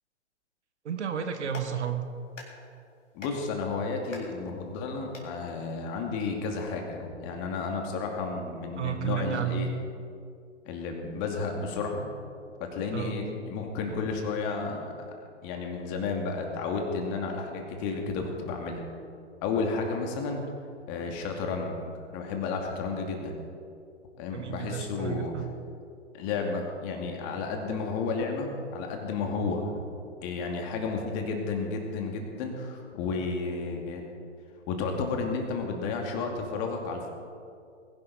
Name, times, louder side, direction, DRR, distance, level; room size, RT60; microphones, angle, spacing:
voice 1, 0.8-2.0 8.8-9.7 12.9-13.2 24.3-25.5, right 8 dB, 65° right, 7 dB, 1.5 m, -32 dB
Clapping, 1.2-6.7, left 2 dB, 85° left, 3.9 m, -49 dB
voice 2, 3.1-9.7 10.7-12.1 12.6-15.1 15.4-18.8 19.4-20.4 20.9-23.3 24.2-25.3 26.1-29.7 30.2-34.0 34.7-37.1, left 4 dB, 35° left, 2 dB, 2.5 m, -32 dB
21.0 x 11.5 x 4.2 m, 2.4 s
figure-of-eight pair, 120°, 37 cm